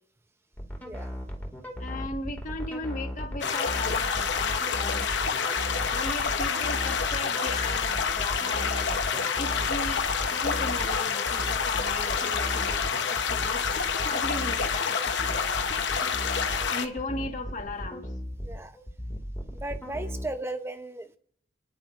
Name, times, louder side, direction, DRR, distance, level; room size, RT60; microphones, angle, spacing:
sound 1, 0.6-20.3, equal, 10° left, 2.0 m, -36 dB
voice 1, 0.8-1.2 16.6-16.8 18.4-18.8 19.5-21.2, right 2 dB, 15° right, 9 dB, 0.7 m, -36 dB
voice 2, 1.8-5.1 5.9-10.0 10.4-13.6 14.0-15.6 16.7-18.1, left 2 dB, 40° left, 2 dB, 1.5 m, -37 dB
sound 2, 3.4-16.9, left 6 dB, 65° left, 0.9 m, -28 dB
28.5 x 10.5 x 2.5 m, 0.67 s
head